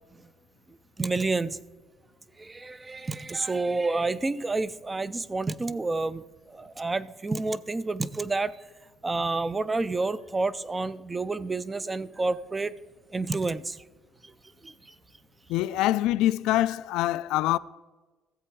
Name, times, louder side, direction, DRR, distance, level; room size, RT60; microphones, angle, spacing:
voice 1, 1.0-1.6 2.4-8.5 9.0-12.7 13.1-13.8 14.2-14.3 14.6-14.9, right 3 dB, 15° right, 0.3 m, -29 dB
voice 2, 15.5-17.6, left 15 dB, 90° left, 0.3 m, -24 dB
14.0 x 7.7 x 4.7 m
cardioid pair, 170°, 0 cm